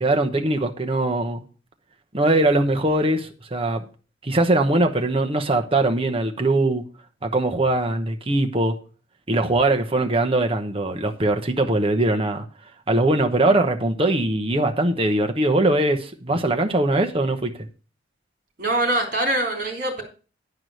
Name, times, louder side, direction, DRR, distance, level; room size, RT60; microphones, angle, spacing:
voice 1, 0.0-1.4 2.1-3.8 4.2-6.8 7.2-8.7 9.3-12.5 12.9-17.5, right 2 dB, 30° right, 1.0 m, -21 dB
voice 2, 18.6-20.0, right 1 dB, 45° right, 3.3 m, -23 dB
10.5 x 4.8 x 6.3 m
head